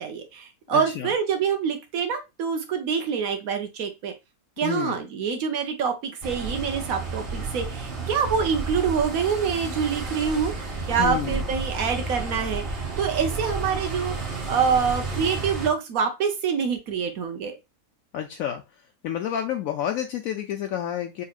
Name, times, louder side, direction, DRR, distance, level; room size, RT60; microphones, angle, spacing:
voice 1, 0.0-4.1 4.6-17.6, right 6 dB, 75° right, 6 dB, 1.1 m, -26 dB
voice 2, 0.7-1.1 4.6-5.0 11.0-11.5 18.1-18.6 19.0-21.2, left 10 dB, 75° left, 4 dB, 1.0 m, -29 dB
sound 1, 6.2-15.7, right 3 dB, 45° right, 1.5 m, -31 dB
5.4 x 2.9 x 2.4 m, 0.24 s
omnidirectional pair, 1.5 m